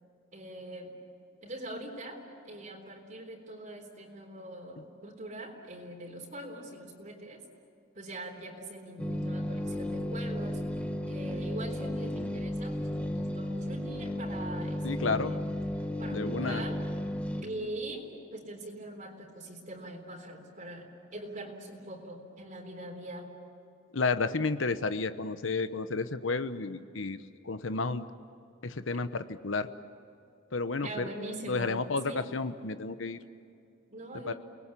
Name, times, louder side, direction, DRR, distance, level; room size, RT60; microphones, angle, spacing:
voice 1, 0.3-0.9 1.4-7.4 7.9-10.6 11.0-15.5 16.0-16.8 17.4-23.3 30.8-31.7 32.0-32.3 33.9-34.3, right 1 dB, 40° right, 1 dB, 3.7 m, -42 dB
sound 1, 9.0-17.4, left 1 dB, 5° left, 1.4 m, -34 dB
voice 2, 14.8-15.3 16.1-16.6 23.9-27.2 27.4-28.0 28.6-29.7 30.5-31.0 31.5-33.2 34.3-34.4, left 3 dB, 80° left, 11 dB, 1.0 m, -31 dB
30.0 x 20.5 x 8.5 m, 2.5 s
head